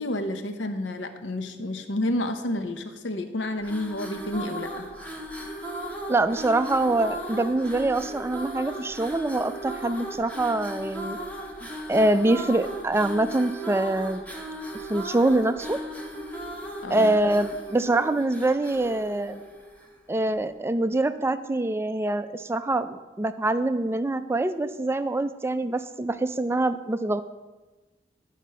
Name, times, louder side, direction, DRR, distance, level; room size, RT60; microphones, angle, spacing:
voice 1, 0.0-4.9 16.8-17.2, left 1 dB, 90° left, 7 dB, 0.7 m, -30 dB
sound 1, 3.6-20.0, right 1 dB, 10° left, 1.0 m, -37 dB
voice 2, 6.1-11.2 11.6-14.2 14.9-15.8 16.9-19.4 20.1-27.2, right 2 dB, 15° right, 11 dB, 0.3 m, -25 dB
11.0 x 5.0 x 5.5 m, 1.2 s
head